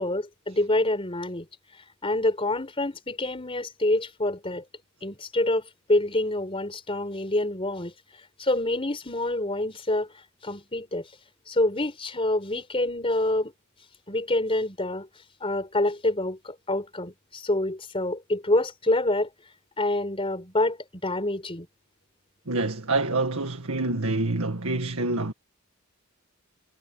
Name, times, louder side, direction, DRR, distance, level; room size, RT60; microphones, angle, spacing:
voice 1, 0.0-1.5 2.0-4.6 5.0-7.9 8.4-10.1 10.4-11.1 11.5-13.5 14.1-15.1 15.4-19.3 19.8-21.7, left 1 dB, 25° left, 4.6 m, -26 dB
voice 2, 22.5-25.3, right 2 dB, 80° right, 1.9 m, -26 dB
head